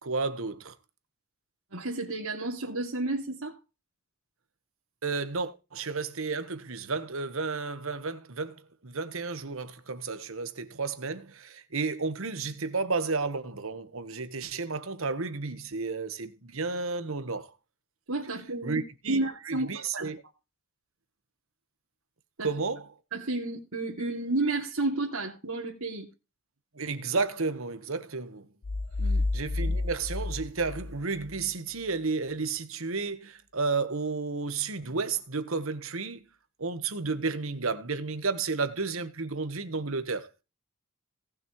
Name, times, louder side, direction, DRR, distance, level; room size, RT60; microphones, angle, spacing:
voice 1, 0.0-0.7 5.0-8.5 8.8-17.5 18.6-20.2 22.4-22.8 26.7-28.5 29.3-36.2 36.6-40.3, right 4 dB, 70° right, 1.3 m, -32 dB
voice 2, 1.7-3.6 18.1-18.8 19.1-20.1 22.4-22.5 23.1-26.1 29.0-29.2, right 2 dB, 85° right, 2.7 m, -31 dB
sound 1, 28.6-31.4, left 2 dB, 55° left, 0.5 m, -30 dB
18.5 x 6.4 x 3.1 m
head